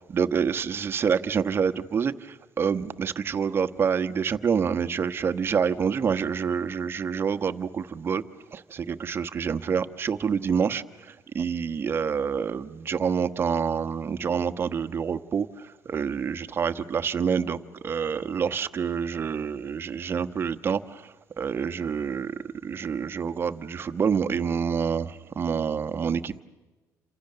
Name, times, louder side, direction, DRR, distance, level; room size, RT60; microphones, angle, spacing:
voice 1, 0.1-8.2 8.5-17.6 17.8-22.3 22.6-26.4, right 6 dB, 35° right, 9 dB, 1.2 m, -27 dB
29.0 x 27.0 x 6.8 m, 1.2 s
cardioid pair, 110°, 6 cm